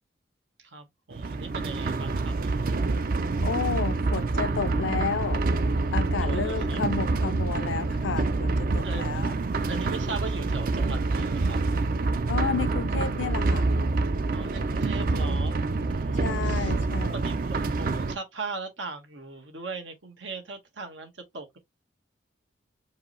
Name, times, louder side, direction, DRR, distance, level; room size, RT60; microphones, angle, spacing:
voice 1, 0.6-2.9 6.2-6.8 8.8-9.3 9.7-11.6 14.3-16.8 17.1-21.6, right 3 dB, 85° right, 1.4 m, -39 dB
sound 1, 1.1-18.2, right 3 dB, 50° right, 0.4 m, -27 dB
voice 2, 3.4-5.4 5.9-9.3 12.3-13.7 16.2-17.1, left 6 dB, 85° left, 0.5 m, -31 dB
4.7 x 2.7 x 3.1 m
head